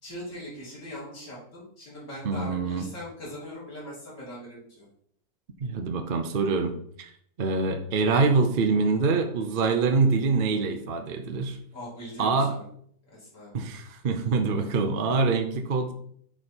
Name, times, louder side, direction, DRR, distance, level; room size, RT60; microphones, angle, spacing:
voice 1, 0.0-4.9 11.7-12.6 13.1-13.5, equal, 45° left, -7 dB, 3.5 m, -41 dB
voice 2, 2.2-2.8 5.6-6.7 7.0-7.1 7.4-11.6 12.2-12.6 13.5-15.9, right 4 dB, 50° right, 6 dB, 0.6 m, -25 dB
7.4 x 4.8 x 4.4 m, 0.65 s
omnidirectional pair, 1.9 m